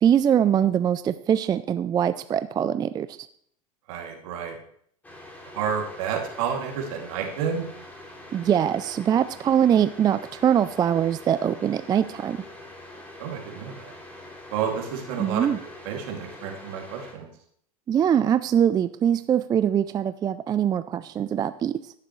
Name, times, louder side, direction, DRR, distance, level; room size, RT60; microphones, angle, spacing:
voice 1, 0.0-3.1 8.3-12.4 15.2-15.6 17.9-21.8, right 9 dB, 20° right, 13 dB, 0.3 m, -22 dB
voice 2, 3.9-4.6 5.5-7.6 13.2-13.9 14.5-15.5 15.8-17.3, right 7 dB, 65° right, 1 dB, 2.5 m, -30 dB
sound 1, 5.0-17.1, left 1 dB, 10° left, 2.9 m, -44 dB
16.5 x 6.7 x 3.1 m, 0.66 s
hypercardioid pair, 95°, 18 cm